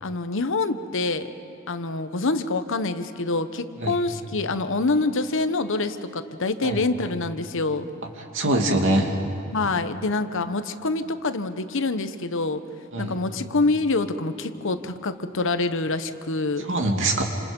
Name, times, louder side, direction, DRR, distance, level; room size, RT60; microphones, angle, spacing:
voice 1, 0.0-1.3 1.7-7.9 9.5-12.6 13.0-16.7, left 3 dB, 65° left, 10 dB, 1.0 m, -26 dB
voice 2, 8.3-9.1 12.9-13.2 16.6-17.2, right 1 dB, 65° right, 2 dB, 2.6 m, -23 dB
28.5 x 26.5 x 5.4 m, 2.9 s
head